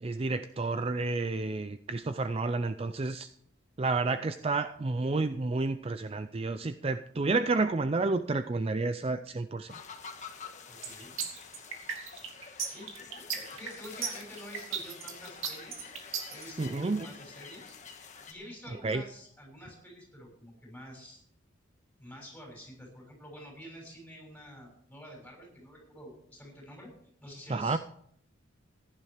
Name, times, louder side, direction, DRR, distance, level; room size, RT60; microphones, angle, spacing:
voice 1, 0.0-3.3 3.8-9.7 16.6-17.1 18.8-19.0 27.5-27.8, right 3 dB, 30° right, 11 dB, 0.4 m, -30 dB
sound 1, 9.7-18.3, left 6 dB, 35° left, 1.5 m, -48 dB
voice 2, 10.7-11.1 12.6-15.9 16.3-21.2 22.0-26.9 27.2-27.8, equal, 5° left, -1 dB, 6.7 m, -48 dB
sound 2, 10.8-16.4, right 7 dB, 80° right, 2.7 m, -35 dB
15.5 x 11.0 x 5.0 m, 0.66 s
head